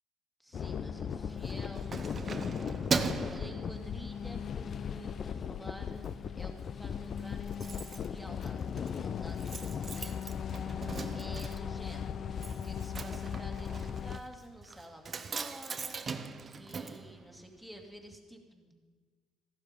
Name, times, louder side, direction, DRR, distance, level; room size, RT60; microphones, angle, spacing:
voice 1, 0.4-18.7, equal, ahead, 2 dB, 2.3 m, -51 dB
sound 1, 0.5-14.2, left 7 dB, 45° left, 0.4 m, -37 dB
Keys jangling, 1.3-4.4 4.8-5.1 5.4-6.1 6.4-6.5 6.7-6.8 7.0-17.8 18.1-18.2, right 5 dB, 30° right, 0.8 m, -40 dB
15.0 x 11.5 x 5.2 m, 1.5 s
cardioid pair, 100°, 0 cm